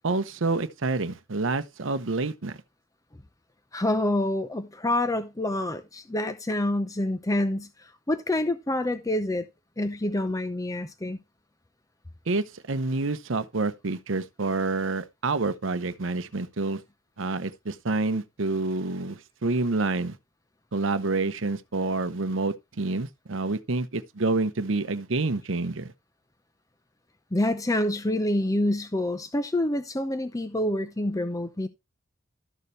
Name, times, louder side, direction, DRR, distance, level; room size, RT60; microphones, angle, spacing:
voice 1, 0.0-2.6 12.3-16.8 17.2-20.2 20.7-25.9, right 3 dB, 70° right, 0.8 m, -28 dB
voice 2, 3.7-9.5 9.8-11.2 27.3-31.7, left 1 dB, 15° left, 0.7 m, -27 dB
13.0 x 6.9 x 3.2 m
head